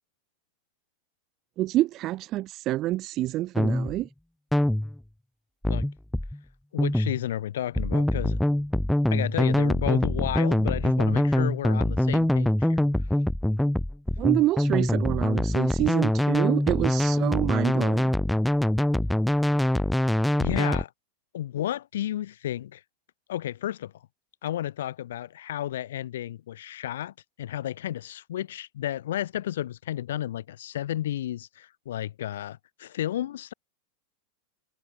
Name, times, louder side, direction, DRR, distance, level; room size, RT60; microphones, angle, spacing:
voice 1, 1.6-4.1 14.2-18.1, right 15 dB, 35° right, 3.8 m, -27 dB
sound 1, 3.6-4.0 4.5-5.0 5.6-6.4 6.8-7.2 7.8-20.8, left 1 dB, ahead, 1.9 m, -24 dB
voice 2, 6.7-8.4 9.1-12.9 20.3-20.9 21.3-22.8 23.3-23.9 24.4-33.5, left 12 dB, 90° left, 5.3 m, -32 dB
supercardioid pair, 155°, 0 cm